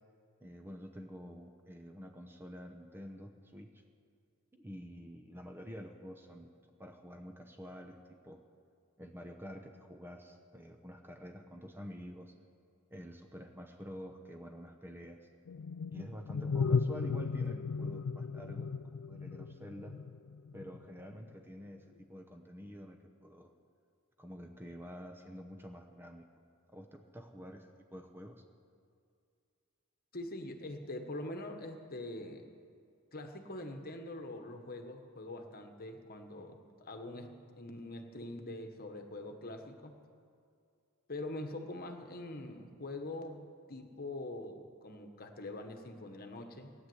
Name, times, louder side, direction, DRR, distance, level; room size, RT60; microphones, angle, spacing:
voice 1, 0.4-3.8 4.5-6.5 6.8-8.4 9.0-12.4 12.9-15.3 15.9-18.7 19.1-20.0 20.5-23.5 24.2-26.3 26.7-28.4, equal, 10° right, 4 dB, 0.8 m, -48 dB
sound 1, 15.5-20.8, left 5 dB, 70° left, 0.4 m, -35 dB
voice 2, 30.1-32.5 33.1-40.0 41.1-43.4 43.7-46.9, left 2 dB, 45° left, 5 dB, 1.3 m, -44 dB
17.5 x 10.0 x 7.9 m, 2.4 s
head